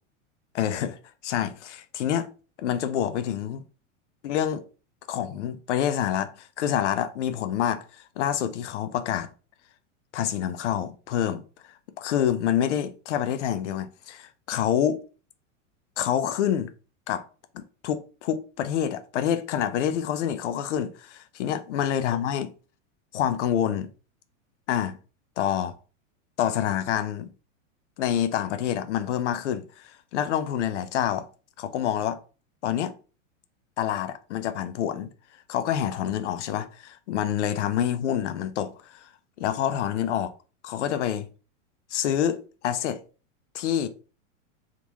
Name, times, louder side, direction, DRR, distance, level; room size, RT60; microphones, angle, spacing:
voice 1, 0.5-2.3 2.6-3.6 4.2-4.6 5.1-7.8 8.2-9.3 10.1-11.4 12.0-15.0 16.0-16.7 17.1-17.2 17.5-22.5 23.1-23.9 24.7-25.0 25.4-25.7 26.4-27.3 28.0-31.3 31.6-32.2 32.6-32.9 33.8-35.1 35.5-39.1 39.4-40.3 40.6-41.3 41.9-43.0 43.5-43.9, left 10 dB, 65° left, 0.5 m, -27 dB
3.6 x 2.4 x 3.0 m
supercardioid pair, 180°, 39 cm